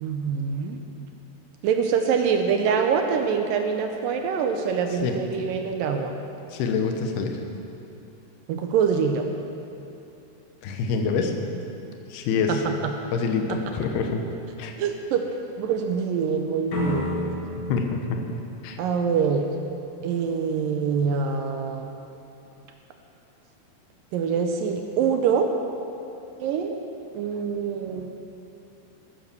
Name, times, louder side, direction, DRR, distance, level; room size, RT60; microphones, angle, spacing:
voice 1, 0.0-0.8 1.6-6.2 8.5-9.2 12.5-12.6 14.8-15.2 15.6-17.3 18.8-19.5 20.0-21.9 24.1-25.5 26.4-26.7 27.1-28.1, right 6 dB, 75° right, 4 dB, 2.1 m, -25 dB
voice 2, 6.5-7.4 10.6-11.3 12.1-12.6 13.1-14.2 14.6-14.7 17.7-18.2 18.6-18.8, left 5 dB, 75° left, 4 dB, 3.0 m, -26 dB
sound 1, 16.7-19.6, left 2 dB, 45° left, 1.8 m, -32 dB
13.0 x 10.0 x 6.8 m, 2.8 s
omnidirectional pair, 4.7 m